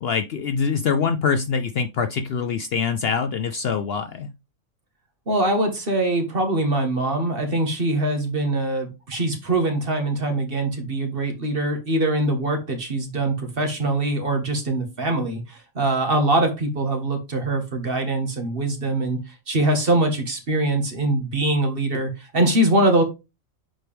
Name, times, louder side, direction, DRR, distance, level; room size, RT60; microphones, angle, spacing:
voice 1, 0.0-4.3, left 6 dB, 60° left, 0.7 m, -24 dB
voice 2, 5.3-19.2 19.5-23.0, right 2 dB, 45° right, 1.8 m, -23 dB
7.7 x 4.6 x 3.4 m
omnidirectional pair, 1.4 m